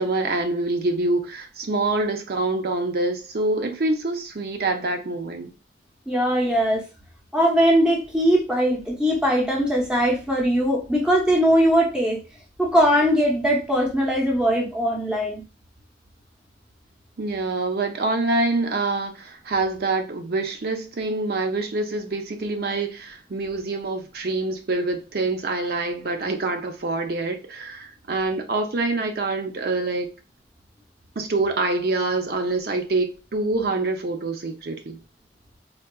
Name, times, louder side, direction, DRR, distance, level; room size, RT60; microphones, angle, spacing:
voice 1, 0.0-5.5 17.2-30.1 31.2-35.0, right 2 dB, 55° right, 0.5 m, -25 dB
voice 2, 6.1-6.8 7.3-12.2 12.6-15.4, equal, 5° right, 0.7 m, -20 dB
3.6 x 2.3 x 2.2 m
head